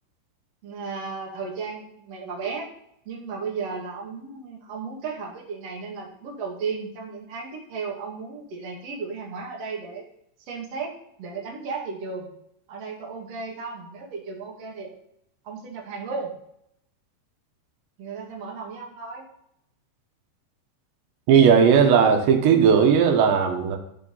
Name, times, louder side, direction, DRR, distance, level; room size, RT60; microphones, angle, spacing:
voice 1, 0.6-2.7 3.0-10.0 10.5-10.9 11.2-12.3 12.7-14.9 15.4-16.3 18.0-19.3, right 4 dB, 40° right, -2 dB, 3.0 m, -34 dB
voice 2, 21.3-23.8, right 7 dB, 85° right, 3 dB, 3.6 m, -17 dB
14.5 x 5.1 x 5.5 m, 0.76 s
omnidirectional pair, 5.0 m